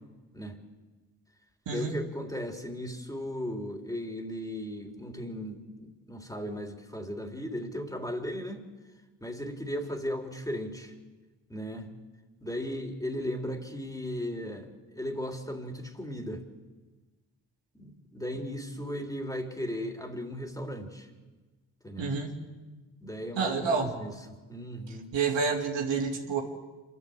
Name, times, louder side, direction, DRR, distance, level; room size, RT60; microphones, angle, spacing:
voice 1, 1.7-8.6 9.2-10.9 11.5-11.9 12.4-16.4 17.7-21.1 21.8-22.1 23.0-24.1 24.5-25.1, equal, 10° left, 3 dB, 3.7 m, -36 dB
voice 2, 22.0-22.4 23.4-23.9 24.9-26.4, right 5 dB, 70° right, 1 dB, 2.8 m, -29 dB
26.5 x 12.5 x 8.1 m, 1.2 s
hypercardioid pair, 45°, 45 cm